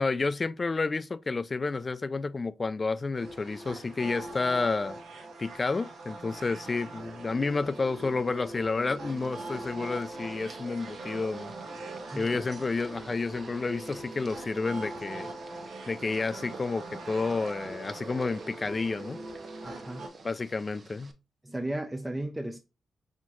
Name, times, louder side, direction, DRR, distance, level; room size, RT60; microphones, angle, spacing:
voice 1, 0.0-5.0 5.4-11.5 12.2-15.3 15.9-19.2 20.2-21.1, left 3 dB, 35° left, 0.4 m, -30 dB
sound 1, 3.1-20.1, right 2 dB, 75° right, 1.2 m, -42 dB
sound 2, 9.1-21.1, right 3 dB, 45° right, 0.8 m, -51 dB
voice 2, 19.6-20.1 21.4-22.6, right 1 dB, 15° right, 0.5 m, -34 dB
4.3 x 3.5 x 3.0 m
cardioid pair, 75°, 0 cm